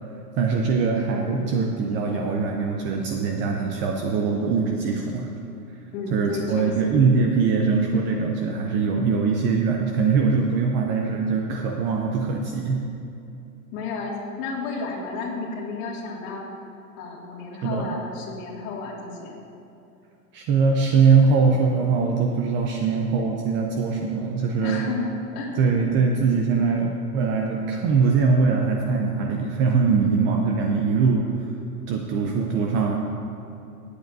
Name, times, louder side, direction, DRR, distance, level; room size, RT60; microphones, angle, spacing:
voice 1, 0.3-5.3 6.1-12.8 17.6-17.9 20.3-24.8 25.6-31.5 31.9-33.0, right 5 dB, 25° right, 1 dB, 0.5 m, -22 dB
voice 2, 5.9-7.0 13.7-16.4 17.0-19.4 24.6-26.2 26.5-26.6, left 4 dB, 40° left, -2 dB, 2.3 m, -32 dB
17.5 x 8.0 x 2.7 m, 2.7 s
hypercardioid pair, 135°, 46 cm